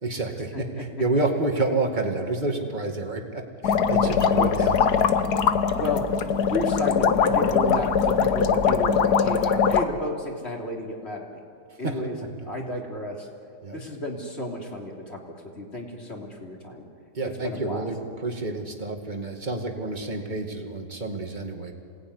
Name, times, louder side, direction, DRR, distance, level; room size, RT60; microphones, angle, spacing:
voice 1, 0.0-0.7 1.0-5.0 11.8-12.0 13.6-13.8 17.1-21.7, right 2 dB, 25° right, 3 dB, 2.4 m, -29 dB
voice 2, 0.5-1.1 4.0-4.7 5.8-11.4 11.8-12.2 12.5-13.3 13.7-15.2 15.6-16.9 17.4-17.9, left 1 dB, 40° left, -1 dB, 3.5 m, -33 dB
sound 1, 3.6-9.8, left 6 dB, 75° left, 1.5 m, -21 dB
27.5 x 18.5 x 9.7 m, 2.4 s
omnidirectional pair, 1.7 m